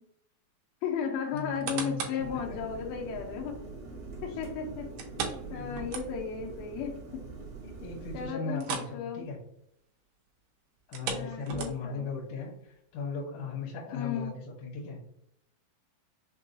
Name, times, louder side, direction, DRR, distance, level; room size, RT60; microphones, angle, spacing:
voice 1, 0.8-3.5 4.2-4.9 5.5-7.2 8.1-9.3 11.0-12.1 13.9-14.3, left 7 dB, 80° left, 1 dB, 2.3 m, -35 dB
voice 2, 1.3-2.6 5.5-5.8 7.6-9.4 10.9-15.0, left 4 dB, 60° left, -4 dB, 1.5 m, -38 dB
sound 1, 1.4-2.3 2.8-2.9 5.0-6.4 6.8-6.9 7.3-7.4 8.5-9.0 9.3-9.5 10.8-12.0 12.7-12.8, right 6 dB, 80° right, 2.6 m, -37 dB
sound 2, 2.2-8.3, right 3 dB, 60° right, 1.7 m, -43 dB
6.0 x 2.2 x 2.7 m, 0.74 s
omnidirectional pair, 4.4 m